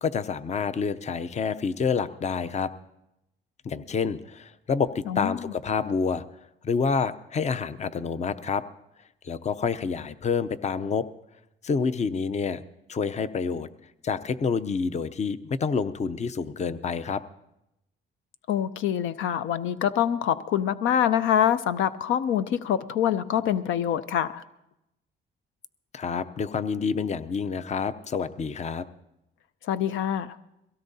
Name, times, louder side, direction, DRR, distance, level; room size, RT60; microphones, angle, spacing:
voice 1, 0.0-2.7 3.6-6.2 6.6-8.6 9.2-11.0 11.6-12.6 12.9-13.7 14.0-17.2 25.9-28.8, left 5 dB, 35° left, 14 dB, 0.6 m, -28 dB
voice 2, 5.1-5.5 18.5-24.4 29.6-30.4, left 10 dB, 80° left, 12 dB, 0.5 m, -25 dB
22.5 x 17.0 x 2.7 m, 0.86 s
cardioid pair, 90°, 20 cm